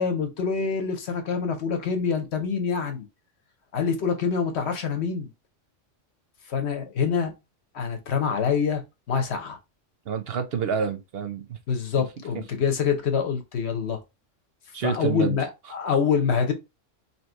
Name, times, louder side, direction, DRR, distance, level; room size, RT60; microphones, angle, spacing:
voice 1, 0.0-3.1 3.7-5.3 6.5-7.3 7.7-8.8 9.1-9.6 11.7-14.0 14.8-16.5, left 6 dB, 65° left, 1.1 m, -25 dB
voice 2, 10.1-11.6 14.7-15.4, right 6 dB, 60° right, 0.7 m, -28 dB
2.9 x 2.8 x 4.4 m
omnidirectional pair, 1.3 m